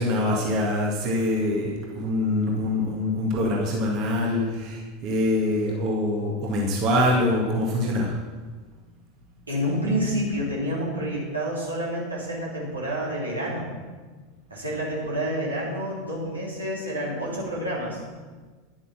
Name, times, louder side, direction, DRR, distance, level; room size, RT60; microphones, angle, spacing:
voice 1, 0.0-8.1, left 1 dB, 45° right, -2 dB, 2.0 m, -24 dB
voice 2, 9.5-13.7 14.5-18.0, equal, 80° right, -5 dB, 3.3 m, -28 dB
10.5 x 8.7 x 6.0 m, 1.4 s
figure-of-eight pair, 80°, 0 cm